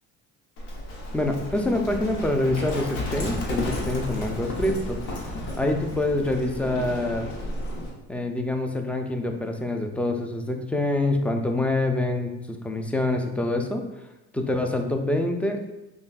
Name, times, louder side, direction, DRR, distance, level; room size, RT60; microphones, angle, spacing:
Livestock farm animals working animals, 0.6-7.9, left 1 dB, 85° left, 0.9 m, -32 dB
voice 1, 1.1-7.3 8.1-13.8 14.3-15.6, left 2 dB, 5° left, 5 dB, 0.3 m, -26 dB
5.2 x 2.3 x 2.4 m, 1.0 s
supercardioid pair, 75°, 37 cm